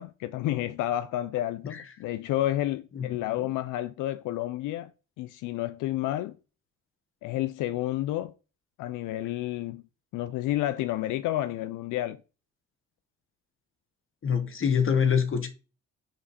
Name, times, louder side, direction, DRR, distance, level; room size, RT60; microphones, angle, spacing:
voice 1, 0.0-4.9 5.2-6.3 7.2-8.3 8.8-9.8 10.1-12.2, left 14 dB, 85° left, 0.5 m, -30 dB
voice 2, 2.9-3.3 14.2-15.5, left 7 dB, 45° left, 1.4 m, -25 dB
7.1 x 5.1 x 4.2 m
cardioid pair, 90°, 30 cm